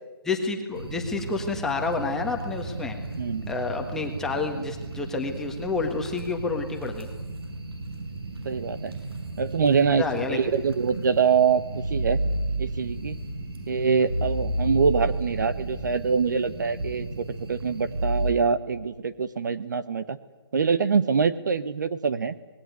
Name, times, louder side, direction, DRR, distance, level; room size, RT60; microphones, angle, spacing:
voice 1, 0.2-3.0 3.5-7.1 9.9-10.4, left 4 dB, 5° left, 2 dB, 1.5 m, -29 dB
sound 1, 0.7-18.3, right 2 dB, 65° right, 7.8 m, -33 dB
voice 2, 3.2-3.5 8.4-9.0 9.4-12.2 12.6-13.2 13.7-20.2 20.5-22.3, right 5 dB, 45° right, 14 dB, 1.1 m, -24 dB
25.5 x 20.5 x 9.3 m, 1.2 s
hypercardioid pair, 165°, 14 cm